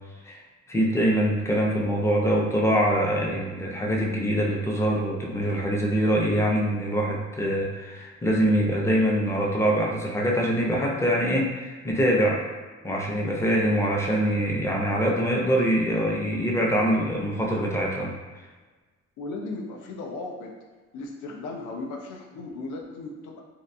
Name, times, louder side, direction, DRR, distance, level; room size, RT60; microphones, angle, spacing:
voice 1, 0.7-12.4 12.8-18.1, equal, 10° left, -2 dB, 0.4 m, -24 dB
voice 2, 19.2-20.5 20.9-23.4, left 3 dB, 85° left, 1 dB, 0.5 m, -36 dB
2.5 x 2.1 x 2.6 m, 1.3 s
cardioid pair, 90°, 30 cm